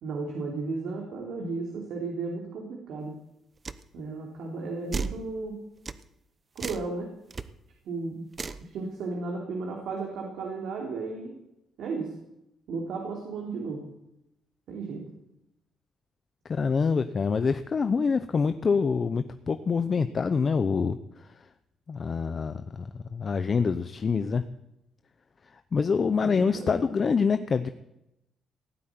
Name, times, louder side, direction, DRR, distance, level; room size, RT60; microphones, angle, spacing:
voice 1, 0.0-3.2 3.9-5.6 6.5-7.1 7.8-8.2 8.6-11.4 11.8-12.1 12.7-13.8 14.7-15.0 26.2-26.8, right 3 dB, 75° right, 0 dB, 3.1 m, -34 dB
sound 1, 3.6-3.8 4.9-5.2 5.9-6.0 6.6-6.9 7.3-7.4 8.3-8.6, right 4 dB, 35° right, 0.9 m, -33 dB
voice 2, 16.5-21.0 21.9-24.4 25.7-27.7, left 5 dB, 40° left, 10 dB, 0.9 m, -26 dB
17.0 x 8.5 x 9.5 m, 0.88 s
cardioid pair, 90°, 0 cm